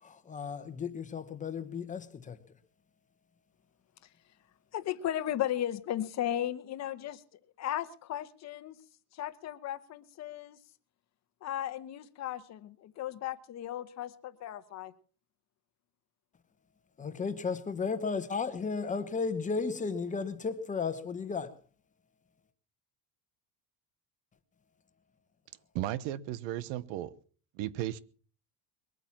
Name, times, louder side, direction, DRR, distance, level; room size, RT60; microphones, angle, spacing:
voice 1, 0.0-2.4 17.0-21.5, left 5 dB, 15° left, 1.1 m, -34 dB
voice 2, 4.7-7.2 7.6-8.8 9.1-10.6 11.4-14.9, left 11 dB, 40° left, 1.1 m, -35 dB
voice 3, 25.7-27.1 27.5-28.0, right 13 dB, 85° right, 1.1 m, -35 dB
22.0 x 9.1 x 7.2 m
cardioid pair, 175°, 43 cm